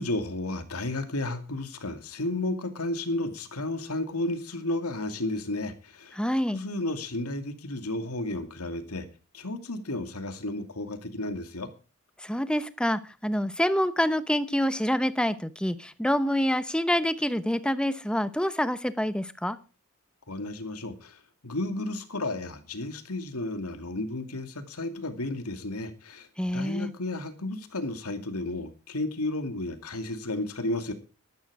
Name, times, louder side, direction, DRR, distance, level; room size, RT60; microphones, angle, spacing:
voice 1, 0.0-6.2 6.5-9.0 9.3-11.7 20.3-21.2 21.4-26.3 26.5-30.9, left 2 dB, 85° left, 8 dB, 2.5 m, -32 dB
voice 2, 6.2-6.6 12.2-19.6 26.4-26.9, equal, 5° left, 13 dB, 0.9 m, -27 dB
13.5 x 13.0 x 4.8 m, 0.34 s
head